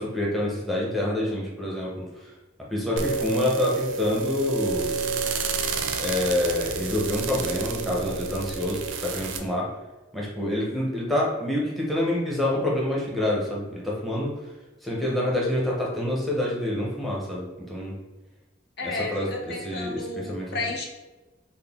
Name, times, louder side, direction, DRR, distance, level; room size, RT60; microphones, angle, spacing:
voice 1, 0.0-2.1 2.7-4.9 6.0-9.7 10.1-14.4 14.8-17.9 18.8-20.5, left 1 dB, ahead, -4 dB, 0.6 m, -27 dB
sound 1, 3.0-9.4, right 5 dB, 85° right, 0.4 m, -29 dB
voice 2, 18.8-20.9, left 3 dB, 60° left, 0 dB, 0.6 m, -32 dB
3.7 x 2.1 x 3.5 m, 1.1 s
head